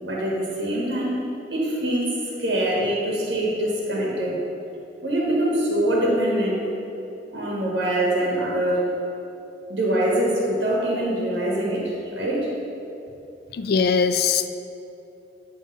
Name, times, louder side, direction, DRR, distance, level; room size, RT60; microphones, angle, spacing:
voice 1, 0.0-1.2 1.5-2.1 2.4-4.4 5.0-6.6 7.3-8.8 9.7-11.8 12.1-12.5, right 1 dB, 70° right, -4 dB, 1.5 m, -23 dB
voice 2, 13.5-14.5, left 5 dB, 60° left, 9 dB, 0.3 m, -21 dB
9.8 x 3.4 x 5.4 m, 2.8 s
head